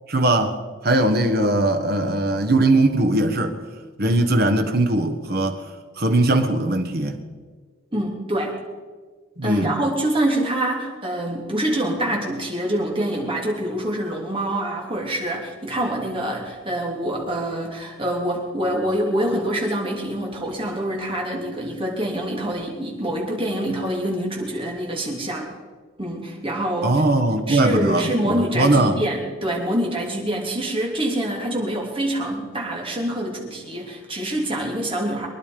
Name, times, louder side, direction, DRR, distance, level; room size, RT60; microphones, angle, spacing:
voice 1, 0.1-0.6 0.8-3.5 4.0-5.6 6.0-7.2 9.4-9.8 26.8-29.0, right 2 dB, 50° right, 7 dB, 1.4 m, -20 dB
voice 2, 7.9-8.6 9.4-25.5 26.0-27.0 27.5-35.3, right 1 dB, 25° right, -1 dB, 3.0 m, -25 dB
23.5 x 10.5 x 5.2 m, 1.5 s
head